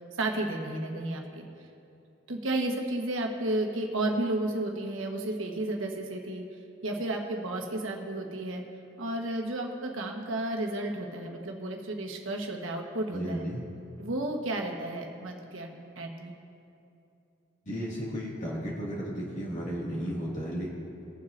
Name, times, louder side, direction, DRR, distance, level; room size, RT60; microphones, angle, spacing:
voice 1, 0.2-1.5 2.3-6.4 6.8-8.6 9.0-13.4 14.0-16.3, right 1 dB, 90° right, 1 dB, 1.3 m, -32 dB
voice 2, 13.1-13.6 17.7-20.7, equal, 40° left, -6 dB, 2.1 m, -34 dB
21.5 x 7.4 x 2.6 m, 2.7 s
head